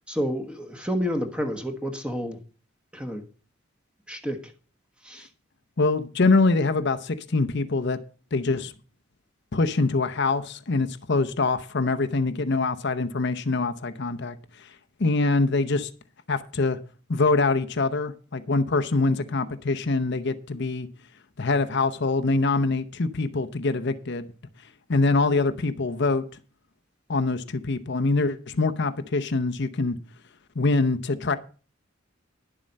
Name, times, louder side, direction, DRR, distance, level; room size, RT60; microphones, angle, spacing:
voice 1, 0.1-2.4 2.9-3.2 4.1-4.5 5.0-5.3, equal, 5° right, 1.3 m, -29 dB
voice 2, 5.8-8.0 8.3-8.7 9.5-14.7 15.0-15.9 16.3-16.8 17.1-20.9 21.4-24.3 24.9-26.3 27.1-30.0 30.6-31.4, left 3 dB, 55° left, 0.7 m, -24 dB
11.0 x 7.4 x 5.3 m
head